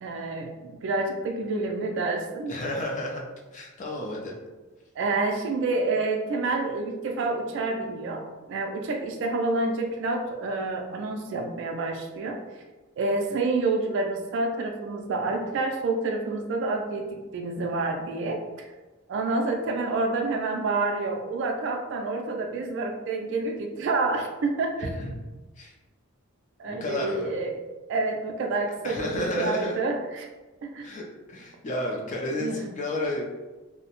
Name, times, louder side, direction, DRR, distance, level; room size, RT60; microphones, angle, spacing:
voice 1, 0.0-2.5 5.0-12.4 13.0-18.7 19.1-24.9 26.6-27.6 27.9-30.3 30.6-30.9 32.4-32.6, right 3 dB, 60° right, 2 dB, 0.3 m, -28 dB
voice 2, 2.5-3.2 3.5-4.3 24.8-25.1 25.6-25.7 26.7-27.3 28.8-29.8 30.8-33.2, left 1 dB, 35° left, 0 dB, 0.4 m, -31 dB
2.6 x 2.0 x 2.9 m, 1.2 s
head